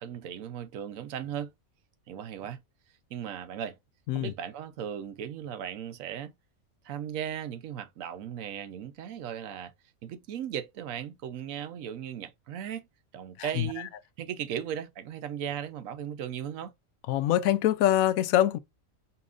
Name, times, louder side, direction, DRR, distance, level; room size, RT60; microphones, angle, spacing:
voice 1, 0.0-1.5 2.1-2.6 3.1-3.7 4.1-6.3 6.8-9.7 10.0-12.9 13.1-13.9 14.2-16.7, right 9 dB, 80° right, 1.1 m, -37 dB
voice 2, 13.4-13.9 17.1-18.6, left 12 dB, 85° left, 1.0 m, -25 dB
5.4 x 2.9 x 2.4 m
omnidirectional pair, 1.4 m